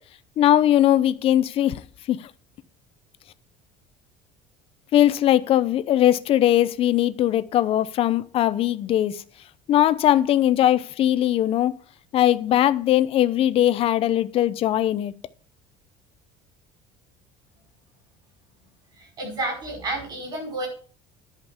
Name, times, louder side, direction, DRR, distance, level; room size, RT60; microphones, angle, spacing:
voice 1, 0.4-1.8 2.1-2.2 4.9-9.2 9.7-11.7 12.1-15.1, left 12 dB, 40° left, 0.6 m, -20 dB
voice 2, 19.0-20.7, right 2 dB, 30° right, 5.3 m, -30 dB
10.5 x 5.2 x 7.1 m
cardioid pair, 170°, 15 cm